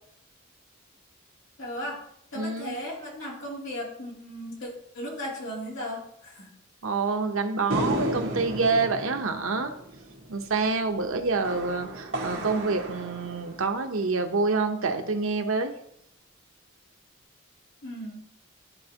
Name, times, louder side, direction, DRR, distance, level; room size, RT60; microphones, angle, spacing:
voice 1, 1.6-2.0 2.3-6.5 17.8-18.2, equal, 65° left, -4 dB, 2.9 m, -36 dB
voice 2, 2.3-2.8 6.8-9.7 10.3-15.7, right 4 dB, 90° right, 6 dB, 0.9 m, -27 dB
sound 1, 7.7-14.2, right 1 dB, 65° right, 1.7 m, -34 dB
12.5 x 4.4 x 2.9 m, 0.73 s
head